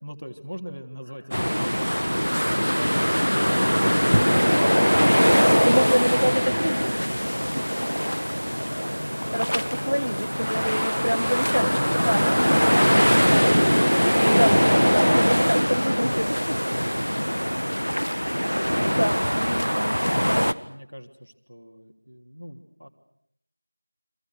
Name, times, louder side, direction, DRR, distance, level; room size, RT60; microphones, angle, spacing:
voice 1, 0.0-6.6 8.1-9.3 9.9-10.0 10.4-10.5 10.8-10.9 15.1-17.9 20.5-22.9, equal, 45° right, 6 dB, 3.3 m, -41 dB
sound 1, 1.3-20.5, equal, 75° left, 1.6 m, -22 dB
sound 2, 4.5-18.0, equal, ahead, 1.1 m, -42 dB
voice 2, 5.4-7.1 7.5-7.8 9.3-12.2 14.2-14.5 14.8-16.4 18.0-18.1 18.8-20.0, equal, 70° right, 6 dB, 1.6 m, -27 dB
sound 3, 6.3-13.6, equal, 25° right, 2.4 m, -47 dB
30.0 x 26.5 x 6.4 m, 0.72 s
figure-of-eight pair, 180°, 0 cm